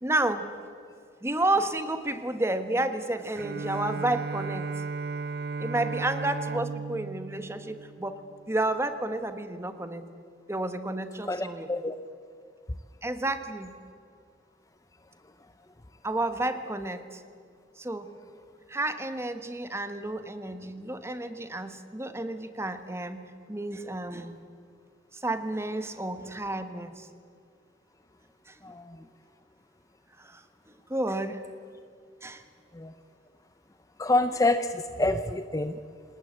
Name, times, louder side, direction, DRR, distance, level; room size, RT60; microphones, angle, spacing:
voice 1, 0.0-0.5 1.2-4.7 5.6-8.2 8.5-10.1 10.5-11.7 13.0-13.7 16.0-17.2 17.8-18.1 18.7-23.2 23.5-24.4 25.1-27.1 28.5-28.6 30.2-30.4 30.9-31.4 32.2-32.4, right 2 dB, 15° right, 9 dB, 1.2 m, -31 dB
Bowed string instrument, 3.4-8.6, right 4 dB, 55° right, 0.5 m, -35 dB
voice 2, 11.3-11.9 28.6-28.8 32.8-32.9 34.0-34.7 35.0-35.7, left 2 dB, 20° left, 10 dB, 0.6 m, -26 dB
28.0 x 19.0 x 8.0 m, 2.3 s
head